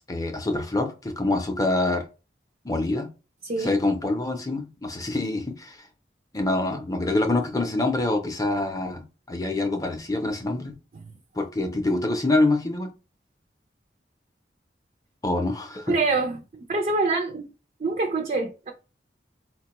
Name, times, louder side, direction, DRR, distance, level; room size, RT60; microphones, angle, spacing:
voice 1, 0.0-2.0 2.6-3.1 3.6-5.9 6.3-10.8 11.4-12.9 15.2-15.9, left 2 dB, 20° left, 0.5 m, -26 dB
voice 2, 3.4-3.8 10.9-11.0 15.9-16.4 16.7-17.4 17.8-18.7, right 3 dB, 40° right, 0.4 m, -25 dB
4.4 x 2.2 x 2.9 m
head